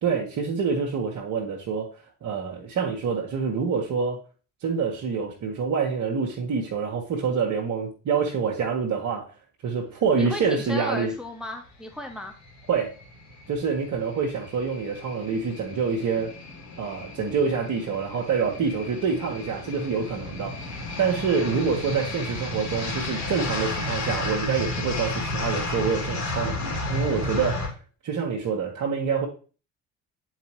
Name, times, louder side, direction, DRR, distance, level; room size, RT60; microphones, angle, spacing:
voice 1, 0.0-1.9 2.2-4.2 4.6-9.2 9.6-11.1 12.7-12.9 13.5-16.3 16.8-27.7 28.0-29.3, right 5 dB, 50° right, -1 dB, 1.6 m, -26 dB
voice 2, 10.2-12.3, left 1 dB, ahead, 3 dB, 1.1 m, -35 dB
sound 1, 11.9-27.7, left 2 dB, 50° left, 2.8 m, -33 dB
9.6 x 4.2 x 3.2 m, 0.38 s
figure-of-eight pair, 50°, 38 cm